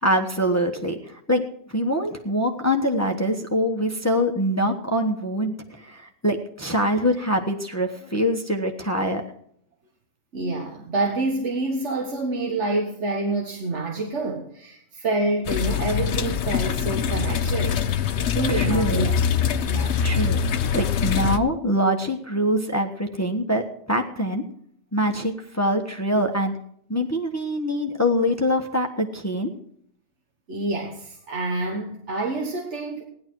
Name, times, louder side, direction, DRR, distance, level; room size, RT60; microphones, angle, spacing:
voice 1, 0.0-1.4 1.7-9.2 18.5-19.0 20.0-24.4 24.9-26.5 26.9-29.5, equal, 15° left, 1.2 m, -24 dB
voice 2, 10.3-17.8 18.3-19.1 19.6-20.0 30.5-33.1, right 2 dB, 85° right, 1.7 m, -27 dB
sound 1, 15.5-21.4, left 7 dB, 75° left, 1.0 m, -24 dB
17.0 x 11.0 x 4.6 m
omnidirectional pair, 1.2 m